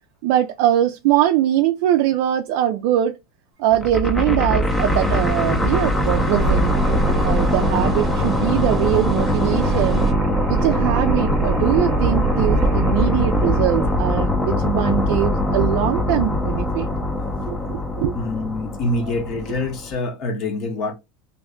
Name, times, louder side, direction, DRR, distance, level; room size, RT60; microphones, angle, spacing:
voice 1, 0.2-3.2 3.6-6.7 7.2-10.0 10.5-16.9 17.5-18.1, right 12 dB, 65° right, 0.3 m, -22 dB
sound 1, 3.7-19.9, left 1 dB, 15° left, 0.5 m, -22 dB
sound 2, 4.7-10.1, right 4 dB, 10° right, 0.9 m, -34 dB
sound 3, 4.9-14.4, right 4 dB, 45° right, 0.7 m, -25 dB
voice 2, 18.1-20.9, left 2 dB, 45° left, 0.8 m, -25 dB
2.6 x 2.2 x 3.6 m
supercardioid pair, 125°, 0 cm